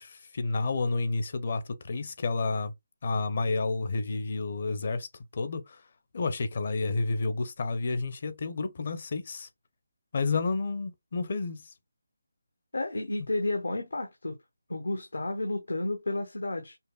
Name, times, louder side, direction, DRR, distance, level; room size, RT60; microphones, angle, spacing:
voice 1, 0.0-2.7 3.0-5.1 5.3-5.8 6.1-9.5 10.1-11.6, left 3 dB, 45° left, 0.6 m, -30 dB
voice 2, 12.7-14.4 14.7-16.8, left 2 dB, 85° left, 0.8 m, -31 dB
5.5 x 2.1 x 2.3 m
figure-of-eight pair, 160°, 0 cm